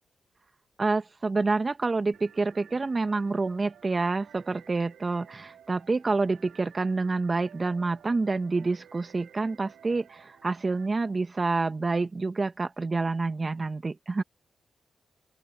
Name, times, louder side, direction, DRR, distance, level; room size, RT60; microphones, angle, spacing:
voice 1, 0.8-14.2, right 3 dB, 40° right, 1.7 m, -28 dB
sound 1, 2.1-10.9, right 9 dB, 80° right, 2.8 m, -54 dB
open air
supercardioid pair, 45°, 0 cm